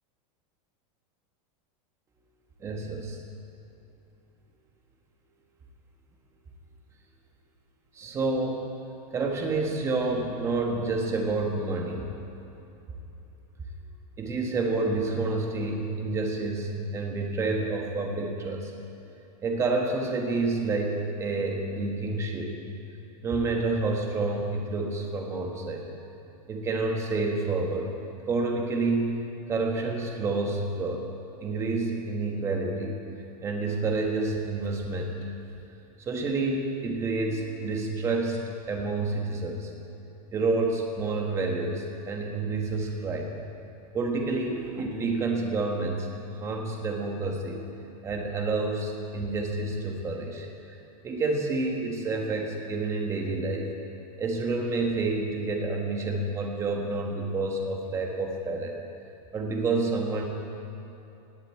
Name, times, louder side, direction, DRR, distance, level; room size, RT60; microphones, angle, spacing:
voice 1, 2.6-3.2 7.9-8.6 9.1-12.1 14.2-18.7 19.4-22.5 23.2-25.9 26.5-27.9 28.3-31.0 31.4-33.0 33.4-35.2 36.0-38.4 38.7-39.7 40.3-43.3 43.9-46.1 46.4-47.6 48.0-50.5 51.0-53.7 54.2-58.8 59.3-60.3, right 3 dB, 15° right, 1 dB, 1.4 m, -29 dB
18.0 x 8.1 x 8.6 m, 2.9 s
supercardioid pair, 175°, 21 cm